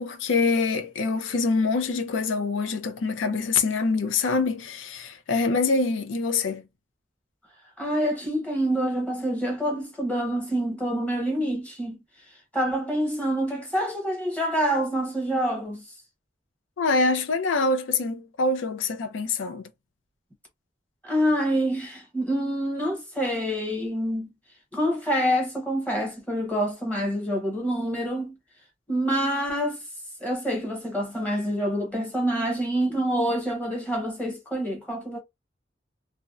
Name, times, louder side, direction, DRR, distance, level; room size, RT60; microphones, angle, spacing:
voice 1, 0.0-6.7 16.8-19.7, left 3 dB, 85° left, 0.5 m, -25 dB
voice 2, 7.8-12.0 12.5-15.8 21.0-24.3 24.7-28.3 28.9-29.8 30.2-35.2, equal, 10° left, 0.7 m, -26 dB
2.6 x 2.1 x 2.3 m
head